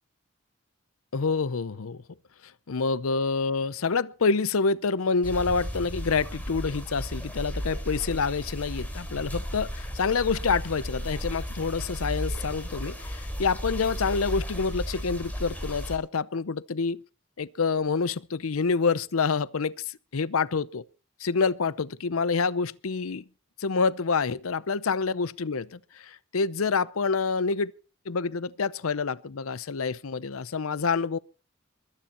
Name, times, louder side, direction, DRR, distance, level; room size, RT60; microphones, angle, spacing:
voice 1, 1.1-2.0 2.7-17.0 17.4-20.8 21.2-23.2 23.6-27.7 28.1-31.2, left 4 dB, 80° left, 0.7 m, -27 dB
sound 1, 5.2-16.0, equal, 10° left, 3.9 m, -34 dB
22.0 x 9.8 x 4.3 m
head